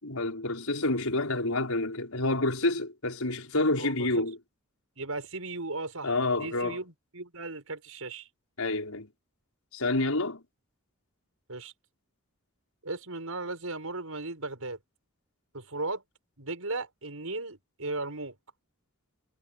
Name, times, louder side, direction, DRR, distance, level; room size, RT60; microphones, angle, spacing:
voice 1, 0.0-4.4 6.0-6.8 8.6-9.1 9.7-10.4, left 2 dB, 85° left, 5.5 m, -28 dB
voice 2, 3.8-4.2 5.0-8.3 11.5-11.7 12.8-14.8 15.5-16.0 16.4-18.4, right 2 dB, 80° right, 5.8 m, -36 dB
head